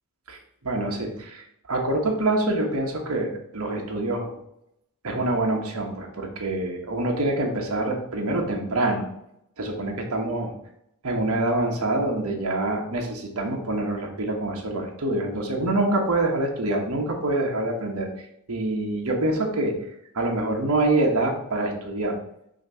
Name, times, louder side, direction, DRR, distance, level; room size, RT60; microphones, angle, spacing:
voice 1, 0.3-4.3 5.0-9.1 9.6-10.5 11.0-18.1 18.5-19.7 20.1-22.1, right 2 dB, 70° right, 1 dB, 1.2 m, -26 dB
6.4 x 2.9 x 5.6 m, 0.77 s
head